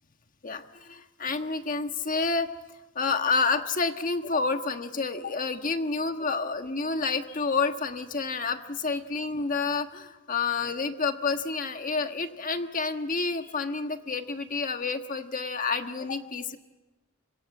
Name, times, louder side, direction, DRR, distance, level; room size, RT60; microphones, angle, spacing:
voice 1, 0.4-2.5 2.9-16.6, left 4 dB, 40° left, 7 dB, 1.5 m, -29 dB
25.5 x 22.5 x 8.6 m, 1.1 s
head